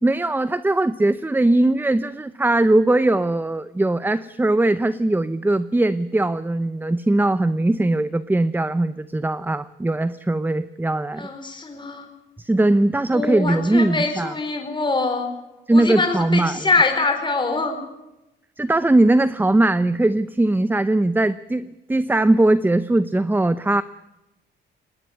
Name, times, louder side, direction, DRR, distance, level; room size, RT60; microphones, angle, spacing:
voice 1, 0.0-11.3 12.4-14.3 15.7-16.6 18.6-23.8, right 2 dB, 10° right, 14 dB, 0.7 m, -20 dB
voice 2, 11.2-12.1 13.1-15.3 15.7-17.8, left 3 dB, 25° left, 5 dB, 4.4 m, -23 dB
20.0 x 19.0 x 9.7 m, 0.94 s
cardioid pair, 90°, 20 cm